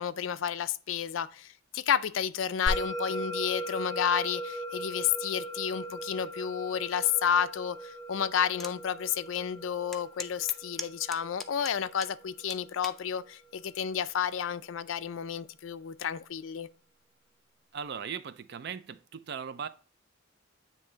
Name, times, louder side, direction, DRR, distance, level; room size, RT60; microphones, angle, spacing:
voice 1, 0.0-16.7, left 8 dB, 85° left, 0.4 m, -31 dB
Musical instrument, 2.7-13.3, right 1 dB, 75° right, 2.3 m, -39 dB
sound 1, 8.6-8.8 9.3-9.4 9.9-12.2 12.5-13.0 13.7-14.0, left 1 dB, ahead, 0.4 m, -40 dB
voice 2, 17.7-19.7, right 7 dB, 55° right, 0.4 m, -38 dB
9.2 x 3.2 x 3.8 m
head